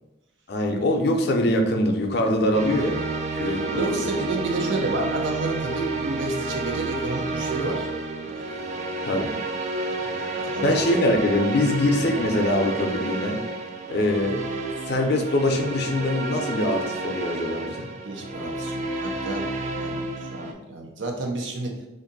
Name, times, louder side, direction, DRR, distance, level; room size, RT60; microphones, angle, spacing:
voice 1, 0.5-3.0 3.3-4.1 9.0-9.3 10.6-13.4 13.9-14.4 14.9-17.9, left 1 dB, 60° left, 4 dB, 0.5 m, -23 dB
sound 1, 2.5-20.5, right 3 dB, 40° right, 0.4 m, -30 dB
voice 2, 3.7-7.9 8.2-8.4 9.3-9.4 9.9-10.8 18.0-21.8, right 2 dB, 85° right, 2 dB, 0.6 m, -30 dB
2.6 x 2.5 x 3.9 m, 1.0 s
head